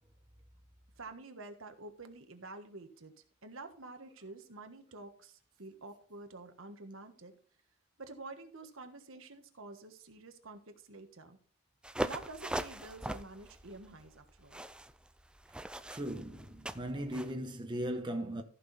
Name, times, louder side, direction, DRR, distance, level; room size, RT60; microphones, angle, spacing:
voice 1, 1.0-3.1 3.4-7.3 8.0-11.4 12.0-14.7, right 3 dB, 65° right, 1.4 m, -49 dB
sound 1, 11.8-17.3, right 1 dB, 5° right, 0.4 m, -41 dB
voice 2, 15.9-18.4, right 1 dB, 20° right, 1.1 m, -38 dB
14.5 x 6.1 x 4.2 m
head